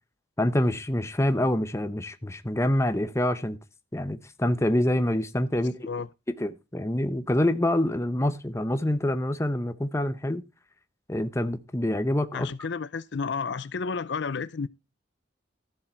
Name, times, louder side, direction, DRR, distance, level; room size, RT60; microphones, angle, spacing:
voice 1, 0.4-3.6 3.9-5.9 6.3-10.4 11.1-12.5, left 1 dB, 15° left, 0.8 m, -26 dB
voice 2, 12.3-14.7, left 5 dB, 65° left, 0.5 m, -31 dB
13.5 x 7.3 x 4.4 m
head